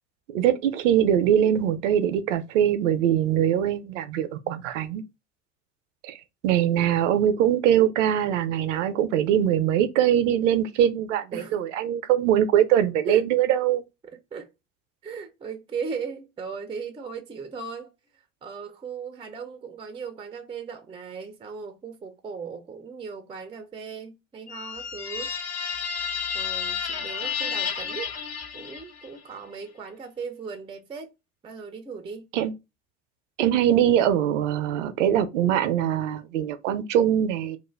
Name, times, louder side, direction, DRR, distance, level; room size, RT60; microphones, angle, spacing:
voice 1, 0.3-5.0 6.0-6.2 6.4-13.8 32.3-32.5 33.4-37.6, right 10 dB, 75° right, 0.6 m, -22 dB
voice 2, 14.1-14.5 15.0-25.3 26.3-28.1 28.5-31.1 31.4-32.3, right 5 dB, 15° right, 0.4 m, -37 dB
sound 1, 24.5-29.2, left 6 dB, 40° left, 0.7 m, -31 dB
2.5 x 2.1 x 3.1 m
hypercardioid pair, 65°, 38 cm